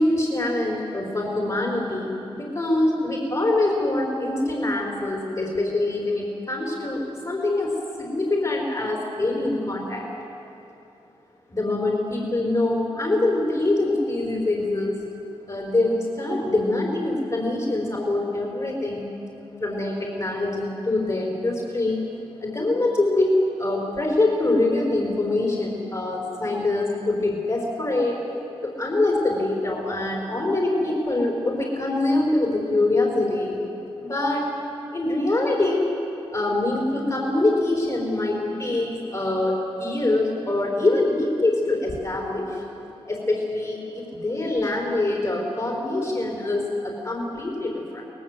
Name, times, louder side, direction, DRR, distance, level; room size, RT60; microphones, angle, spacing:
voice 1, 0.0-7.7 8.0-10.0 11.5-15.0 15.5-19.1 19.6-22.0 22.4-28.2 28.6-33.6 34.0-34.5 34.9-35.9 36.3-42.6 43.0-48.0, left 2 dB, 40° left, -2 dB, 4.5 m, -24 dB
23.5 x 19.0 x 8.1 m, 2.8 s
cardioid pair, 60°, 11 cm